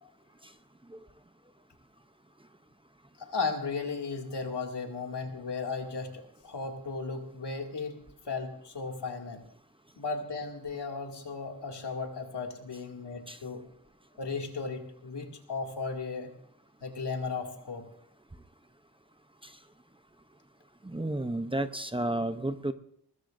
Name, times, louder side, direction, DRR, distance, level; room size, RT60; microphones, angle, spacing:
voice 1, 3.2-8.0 8.2-9.4 10.0-13.6 14.2-16.3 16.8-17.8, left 4 dB, 85° left, 1 dB, 2.5 m, -35 dB
voice 2, 20.8-22.7, right 1 dB, 15° right, 9 dB, 0.7 m, -31 dB
23.0 x 20.0 x 2.6 m, 0.64 s
wide cardioid pair, 120°, 40 cm